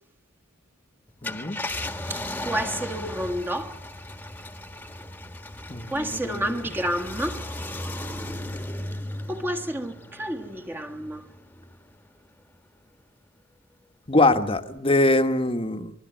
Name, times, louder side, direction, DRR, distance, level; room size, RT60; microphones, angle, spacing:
Car, 1.1-11.9 12.4-12.5 14.5-14.8, left 1 dB, 10° left, 1.5 m, -36 dB
voice 1, 1.2-1.6 5.7-6.5 14.1-15.9, left 2 dB, 25° left, 1.4 m, -23 dB
voice 2, 2.1-3.8 5.9-7.4 9.3-11.3, equal, 10° right, 1.5 m, -30 dB
24.0 x 22.5 x 9.0 m
head